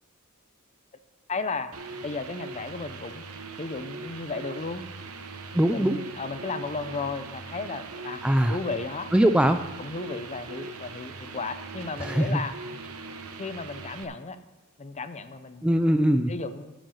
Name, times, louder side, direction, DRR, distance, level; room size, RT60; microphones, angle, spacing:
voice 1, 1.3-1.7 2.0-3.2 3.6-4.8 5.7-8.2 8.5-9.1 9.8-12.5 13.4-14.4 14.8-15.7 16.3-16.7, left 3 dB, 30° left, 10 dB, 0.6 m, -34 dB
sound 1, 1.7-14.0, right 3 dB, 80° right, 0.9 m, -41 dB
voice 2, 5.5-6.0 8.2-8.6 9.1-9.6 12.0-12.4 15.6-16.3, right 1 dB, 5° right, 8 dB, 0.3 m, -21 dB
12.0 x 5.3 x 7.1 m, 1.1 s
head